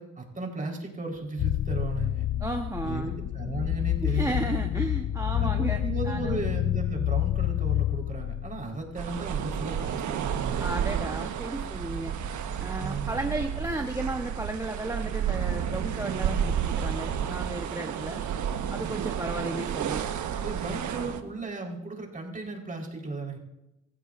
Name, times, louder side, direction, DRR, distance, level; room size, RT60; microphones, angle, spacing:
voice 1, 0.0-2.3 2.8-4.4 5.4-10.6 12.8-13.2 20.4-23.4, right 3 dB, 25° right, 0 dB, 4.3 m, -35 dB
sound 1, 1.4-8.9, left 13 dB, 50° left, 0.5 m, -28 dB
voice 2, 2.4-3.2 4.0-6.4 10.6-12.2 12.6-18.2 18.7-20.0, right 2 dB, 10° right, 3 dB, 1.1 m, -34 dB
sound 2, 9.0-21.2, right 8 dB, 75° right, 1.3 m, -31 dB
25.5 x 15.5 x 2.6 m, 0.93 s
cardioid pair, 90°, 30 cm